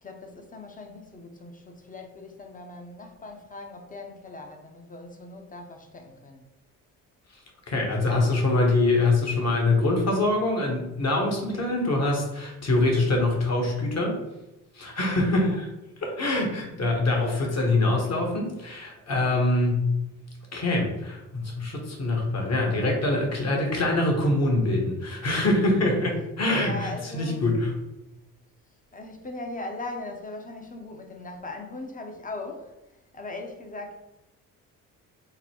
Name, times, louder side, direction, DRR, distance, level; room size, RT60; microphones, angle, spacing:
voice 1, 0.0-6.4 15.4-15.6 26.5-27.4 28.9-33.9, left 2 dB, 20° left, 3 dB, 0.8 m, -39 dB
voice 2, 7.3-14.2 14.7-15.7 16.0-20.0 20.5-27.7, left 2 dB, 40° left, 1 dB, 1.4 m, -24 dB
3.9 x 2.2 x 4.4 m, 0.97 s
supercardioid pair, 60°, 40 cm